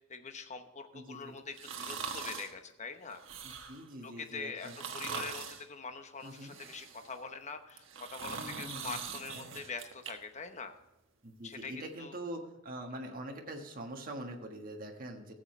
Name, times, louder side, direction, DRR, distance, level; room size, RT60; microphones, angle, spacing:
voice 1, 0.0-3.2 4.0-7.8 8.1-10.7 11.4-12.2, left 4 dB, 35° left, 7 dB, 1.0 m, -44 dB
voice 2, 0.9-1.4 3.4-4.8 6.2-6.5 8.4-9.0 11.2-15.3, right 1 dB, 45° right, 2 dB, 1.5 m, -44 dB
sound 1, 1.5-2.5 3.1-3.9 4.6-5.6 6.2-7.2 7.7-10.1 10.5-10.6, right 6 dB, 70° right, 1.4 m, -42 dB
15.0 x 7.8 x 3.3 m, 0.98 s
head